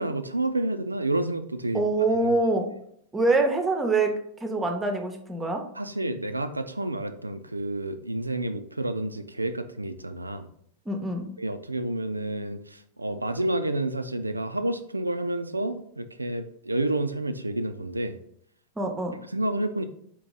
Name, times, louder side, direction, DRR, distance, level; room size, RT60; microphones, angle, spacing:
voice 1, 0.0-1.8 2.1-2.3 5.8-10.5 11.4-18.2 19.3-19.8, right 1 dB, 85° right, 10 dB, 0.3 m, -29 dB
voice 2, 1.7-2.7 3.1-4.1 4.4-5.6 10.9-11.3 18.8-19.1, right 2 dB, 15° right, 4 dB, 0.7 m, -24 dB
4.4 x 2.9 x 3.7 m, 0.67 s
figure-of-eight pair, 90°, 0 cm